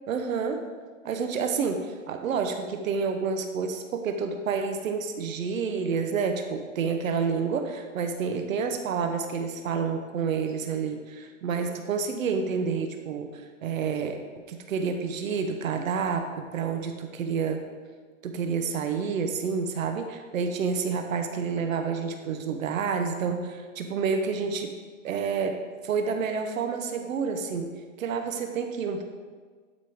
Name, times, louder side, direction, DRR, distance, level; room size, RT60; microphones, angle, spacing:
voice 1, 0.1-0.6 1.0-14.2 14.5-17.6 18.2-24.7 25.0-29.0, right 5 dB, 80° right, 5 dB, 1.0 m, -29 dB
12.0 x 5.2 x 3.6 m, 1.5 s
hypercardioid pair, 145°, 40 cm